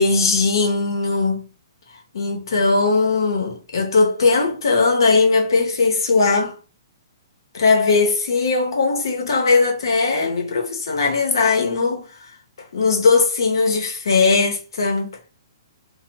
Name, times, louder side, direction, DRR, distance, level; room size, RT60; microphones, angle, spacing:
voice 1, 0.0-1.4 2.1-6.5 7.5-12.1 12.7-15.1, left 4 dB, 70° left, 0.7 m, -19 dB
2.1 x 2.1 x 2.9 m
hypercardioid pair, 125°, 2 cm